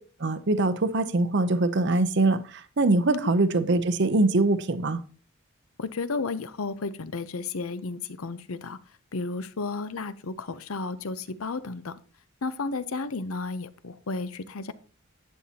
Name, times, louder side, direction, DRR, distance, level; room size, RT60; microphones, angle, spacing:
voice 1, 0.2-5.0, right 2 dB, 55° right, 0.6 m, -23 dB
voice 2, 5.8-8.8 9.1-12.0 12.4-14.7, left 3 dB, 80° left, 0.7 m, -33 dB
11.5 x 8.4 x 2.8 m
head